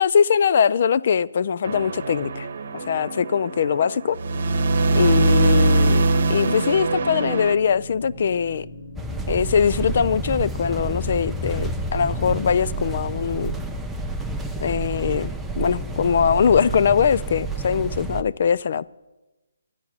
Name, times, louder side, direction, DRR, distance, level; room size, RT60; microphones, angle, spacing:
voice 1, 0.0-2.5 2.7-4.2 4.9-6.0 6.3-8.7 9.3-13.6 14.6-18.9, left 7 dB, 50° left, 0.3 m, -21 dB
sound 1, 1.6-7.6, right 2 dB, 55° right, 0.9 m, -22 dB
sound 2, 6.3-13.6, left 1 dB, 85° left, 2.2 m, -41 dB
sound 3, 9.0-18.2, right 2 dB, 5° right, 0.6 m, -29 dB
11.5 x 9.9 x 6.0 m
figure-of-eight pair, 150°, 0 cm